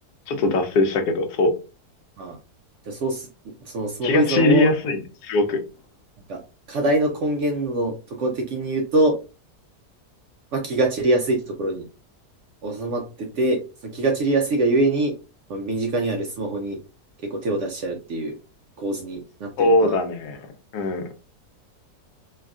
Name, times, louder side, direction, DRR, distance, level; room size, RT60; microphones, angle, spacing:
voice 1, 0.3-1.6 4.0-5.6 19.6-20.5 20.7-21.1, left 2 dB, 85° left, 1.2 m, -21 dB
voice 2, 2.8-3.3 3.6-4.7 6.3-6.4 6.7-9.2 10.5-11.9 12.6-15.2 15.5-16.8 17.2-18.4 18.8-20.0, right 2 dB, 70° right, 0.7 m, -24 dB
3.4 x 2.3 x 2.3 m
omnidirectional pair, 1.7 m